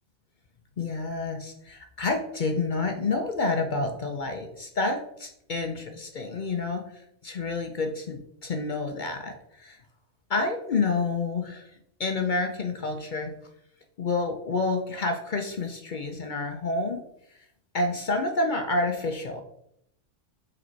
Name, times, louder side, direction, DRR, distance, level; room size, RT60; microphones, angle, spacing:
voice 1, 0.8-9.8 10.3-11.7 12.0-13.3 14.0-17.0 17.7-19.4, left 3 dB, 50° left, 5 dB, 0.6 m, -29 dB
5.0 x 4.2 x 4.4 m, 0.76 s
omnidirectional pair, 1.3 m